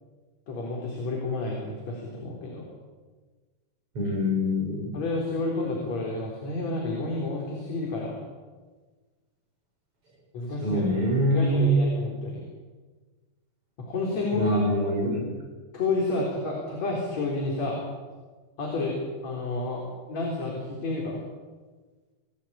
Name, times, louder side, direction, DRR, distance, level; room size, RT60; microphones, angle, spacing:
voice 1, 0.5-2.7 4.9-8.2 10.3-10.9 11.3-12.4 13.8-14.5 15.7-17.8 18.6-21.2, left 3 dB, 50° left, -1 dB, 5.0 m, -30 dB
voice 2, 3.9-5.0 10.6-11.7 14.3-15.3, equal, 40° right, 1 dB, 6.7 m, -24 dB
27.5 x 18.0 x 8.8 m, 1.4 s
omnidirectional pair, 4.2 m